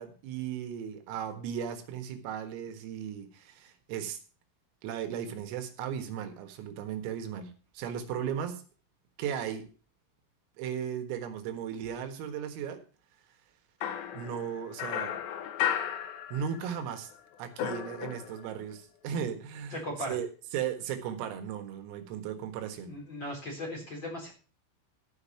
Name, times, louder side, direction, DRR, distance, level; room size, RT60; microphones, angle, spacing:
voice 1, 0.0-4.2 4.8-8.6 9.2-9.7 10.6-12.8 14.1-15.2 16.3-17.1 17.4-22.9, right 8 dB, 85° right, 7 dB, 4.2 m, -36 dB
sound 1, 13.8-16.8 17.1-18.6, left 10 dB, 70° left, 3.0 m, -34 dB
voice 2, 19.7-20.2 22.8-24.3, equal, 25° left, -1 dB, 3.9 m, -37 dB
13.0 x 6.9 x 5.6 m, 0.36 s
omnidirectional pair, 5.9 m